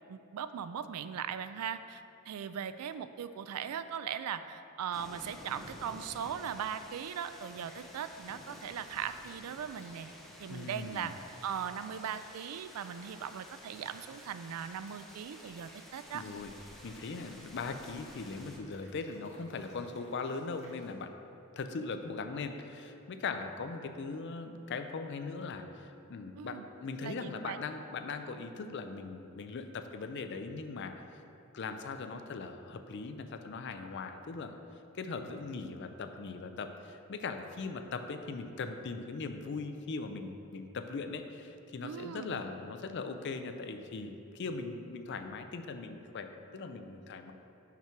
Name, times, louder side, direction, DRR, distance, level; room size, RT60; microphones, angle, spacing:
voice 1, 0.1-10.1 10.4-11.1 11.4-16.2 26.4-26.7 27.0-27.6 41.8-42.4, right 8 dB, 90° right, 12 dB, 0.3 m, -39 dB
sound 1, 4.9-18.6, equal, ahead, 0.6 m, -52 dB
sound 2, 7.6-20.9, left 1 dB, 30° left, 1.4 m, -60 dB
voice 2, 10.5-11.2 16.1-16.5 16.8-21.1 21.6-31.2 31.5-34.5 34.9-47.3, left 4 dB, 55° left, 7 dB, 0.4 m, -40 dB
5.8 x 4.5 x 5.9 m, 2.9 s
head